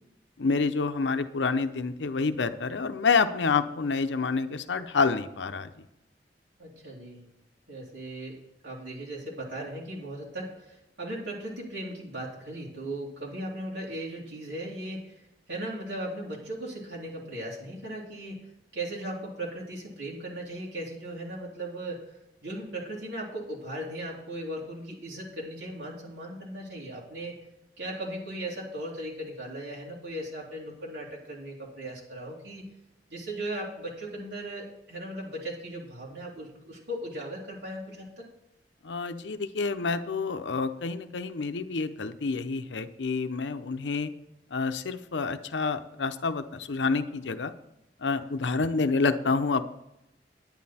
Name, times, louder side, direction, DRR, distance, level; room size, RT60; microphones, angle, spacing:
voice 1, 0.4-5.7 38.8-44.1 44.5-47.5 48.0-49.7, left 4 dB, 90° left, 10 dB, 0.7 m, -28 dB
voice 2, 6.6-7.3 7.7-15.2 15.5-18.5 18.7-22.1 22.4-27.4 27.8-32.6 33.1-38.3, right 1 dB, 90° right, -4 dB, 2.8 m, -37 dB
10.5 x 9.8 x 4.2 m, 0.87 s
head